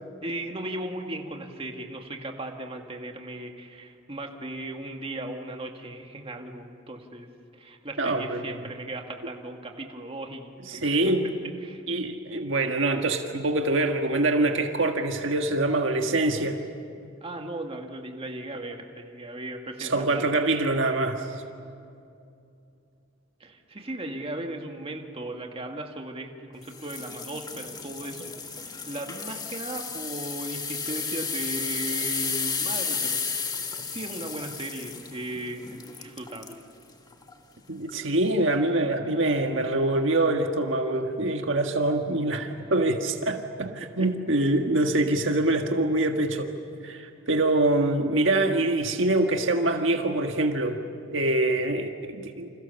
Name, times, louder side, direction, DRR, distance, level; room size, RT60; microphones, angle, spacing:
voice 1, 0.2-7.3 7.6-11.2 11.6-11.8 17.2-20.3 23.4-33.2 33.9-36.6 43.8-44.1, right 1 dB, 30° right, 3 dB, 2.1 m, -37 dB
voice 2, 8.0-8.6 10.6-11.3 11.9-16.6 19.8-21.3 37.7-46.5 46.8-50.8 51.1-52.5, right 2 dB, 65° right, 4 dB, 1.6 m, -25 dB
sound 1, 26.7-36.6 37.1-37.3 37.9-38.0, left 5 dB, 20° left, 1.5 m, -33 dB
29.0 x 27.5 x 7.0 m, 2.5 s
head